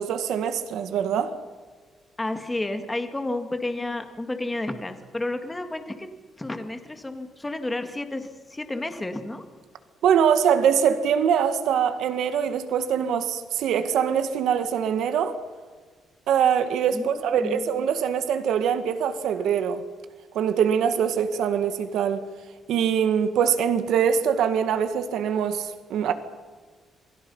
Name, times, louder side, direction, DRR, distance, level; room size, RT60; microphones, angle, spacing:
voice 1, 0.0-1.3 10.0-15.4 16.3-19.8 20.3-22.2 22.7-26.1, right 8 dB, 80° right, 1.9 m, -23 dB
voice 2, 2.2-6.1 6.4-9.4 16.9-17.6, left 2 dB, 10° left, 2.1 m, -31 dB
28.0 x 24.0 x 5.6 m
cardioid pair, 155°, 0 cm